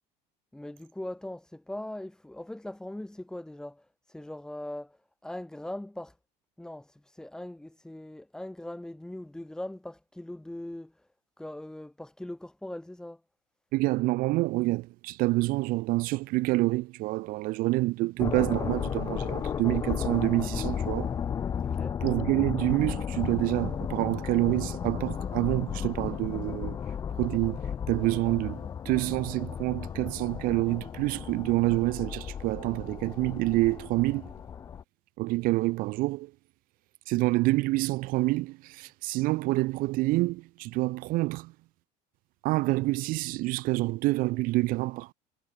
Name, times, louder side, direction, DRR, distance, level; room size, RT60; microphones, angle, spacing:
voice 1, 0.5-6.2 6.6-11.1 11.4-13.2 21.6-22.0, left 1 dB, 5° left, 2.8 m, -40 dB
voice 2, 13.7-21.2 22.0-26.8 27.1-34.3 35.2-36.3 37.1-41.5 42.4-45.1, right 20 dB, 60° right, 1.0 m, -27 dB
sound 1, 18.2-34.8, left 7 dB, 20° left, 0.4 m, -34 dB
cardioid pair, 145°, 16 cm